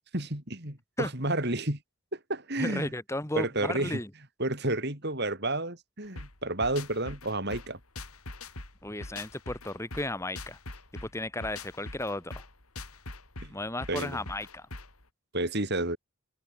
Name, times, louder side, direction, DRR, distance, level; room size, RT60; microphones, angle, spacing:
voice 1, 0.1-1.8 2.1-2.9 3.3-4.0 4.4-7.8 13.4-13.5 13.9-14.2 15.3-16.0, right 2 dB, 50° right, 5.0 m, -31 dB
voice 2, 2.6-4.1 8.8-10.6 11.0-12.4 13.5-14.7, left 1 dB, 10° left, 1.5 m, -34 dB
sound 1, 6.2-15.0, left 2 dB, 80° left, 6.4 m, -43 dB
open air
head